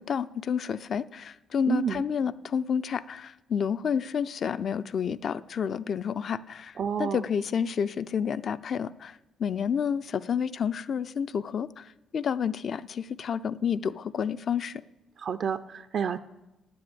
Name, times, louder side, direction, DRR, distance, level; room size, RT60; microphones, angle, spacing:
voice 1, 0.0-6.7 7.0-11.8 12.1-14.8, left 7 dB, 55° left, 14 dB, 0.4 m, -30 dB
voice 2, 1.7-2.0 6.8-7.2 15.2-16.2, right 7 dB, 60° right, 9 dB, 0.4 m, -29 dB
9.7 x 7.7 x 8.7 m, 1.0 s
cardioid pair, 90°, 0 cm